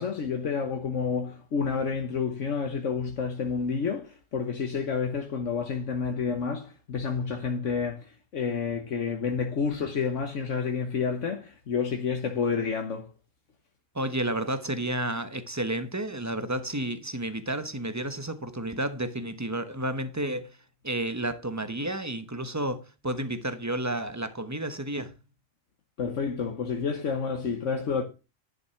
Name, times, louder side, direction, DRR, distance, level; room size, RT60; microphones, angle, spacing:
voice 1, 0.0-13.1 26.0-28.0, left 5 dB, 70° left, 1.5 m, -29 dB
voice 2, 13.9-20.5 20.8-25.1, right 1 dB, 15° right, 1.0 m, -31 dB
11.0 x 6.5 x 5.8 m
omnidirectional pair, 1.3 m